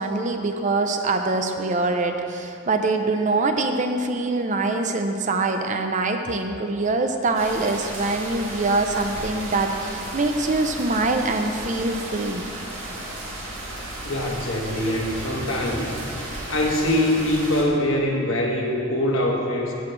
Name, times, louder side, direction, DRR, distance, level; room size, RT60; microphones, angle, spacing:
voice 1, 0.0-12.4, right 3 dB, 40° right, 5 dB, 0.6 m, -24 dB
sound 1, 7.3-17.6, right 1 dB, 75° right, 1.8 m, -34 dB
voice 2, 14.0-16.0 16.5-19.7, left 1 dB, 70° left, -1 dB, 1.4 m, -23 dB
16.0 x 6.1 x 3.3 m, 2.7 s
head